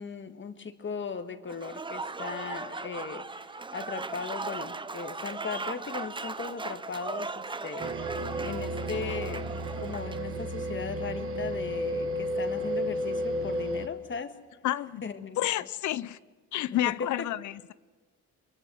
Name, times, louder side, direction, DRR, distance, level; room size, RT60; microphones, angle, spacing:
voice 1, 0.0-14.4 15.0-15.4 17.0-17.3, left 5 dB, 40° left, 1.7 m, -38 dB
Applause / Crowd, 1.5-10.3, right 3 dB, 15° right, 0.7 m, -38 dB
sound 1, 7.8-13.9, equal, 45° right, 1.8 m, -32 dB
voice 2, 14.6-15.0 15.4-16.2 16.5-17.7, left 14 dB, 70° left, 0.6 m, -30 dB
23.5 x 23.0 x 6.3 m
cardioid pair, 90°, 30 cm